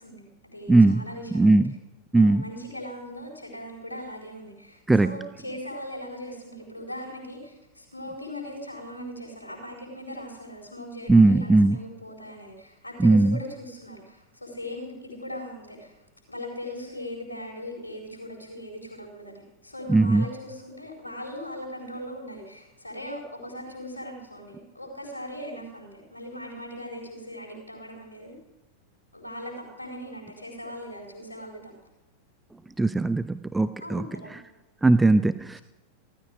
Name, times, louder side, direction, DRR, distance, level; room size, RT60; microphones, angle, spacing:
voice 1, 0.0-1.6 2.1-15.9 16.3-28.3 29.1-31.7 33.8-34.3, equal, 80° left, -1 dB, 4.3 m, -39 dB
voice 2, 0.7-1.0 1.3-1.8 2.1-2.4 4.9-5.1 11.1-11.8 13.0-13.4 19.9-20.3 32.8-34.0 34.8-35.6, right 2 dB, 10° right, 14 dB, 0.4 m, -19 dB
15.5 x 13.5 x 4.9 m, 1.1 s
figure-of-eight pair, 90°, 0 cm